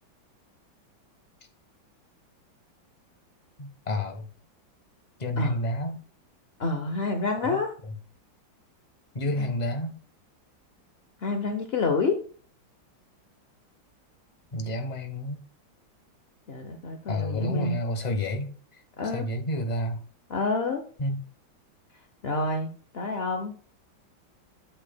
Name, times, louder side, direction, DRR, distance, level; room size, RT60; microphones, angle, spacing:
voice 1, 3.6-4.3 5.2-6.0 7.4-7.6 7.9-8.0 9.1-10.0 14.5-15.4 17.1-20.0 21.0-21.2, left 1 dB, 30° left, 5 dB, 0.8 m, -30 dB
voice 2, 6.6-7.7 11.2-12.2 16.5-17.8 19.0-19.3 20.3-20.8 22.2-23.5, left 3 dB, 65° left, 5 dB, 0.6 m, -28 dB
8.8 x 7.9 x 2.2 m, 0.42 s
omnidirectional pair, 2.1 m